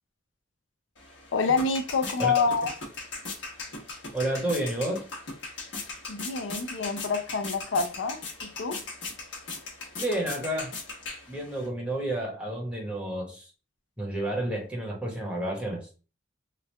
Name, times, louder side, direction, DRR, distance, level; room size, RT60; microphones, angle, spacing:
sound 1, 1.0-11.7, left 3 dB, 70° left, 1.1 m, -39 dB
voice 1, 1.3-2.7 6.1-8.8, left 4 dB, 90° left, 0.5 m, -27 dB
voice 2, 4.1-5.0 10.0-10.7 11.3-13.5 14.0-15.9, right 1 dB, 5° right, 1.1 m, -30 dB
3.1 x 2.4 x 3.2 m
head